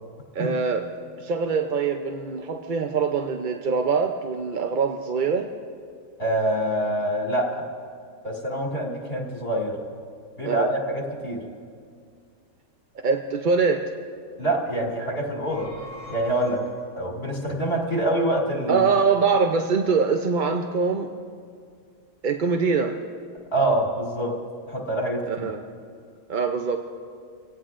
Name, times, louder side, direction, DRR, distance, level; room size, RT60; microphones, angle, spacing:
voice 1, 0.3-0.8 1.2-5.5 10.4-10.7 13.0-13.9 18.7-21.1 22.2-23.0 25.3-25.6 26.3-26.8, right 5 dB, 50° right, 4 dB, 0.6 m, -23 dB
voice 2, 6.2-7.7 8.2-9.8 10.4-11.4 14.4-15.7 16.1-16.6 17.0-18.9 23.5-24.4 24.7-25.5, right 1 dB, 45° left, -1 dB, 2.9 m, -25 dB
sound 1, 15.3-17.1, left 1 dB, 75° right, 2.3 m, -43 dB
25.5 x 17.5 x 2.5 m, 2.1 s
omnidirectional pair, 1.4 m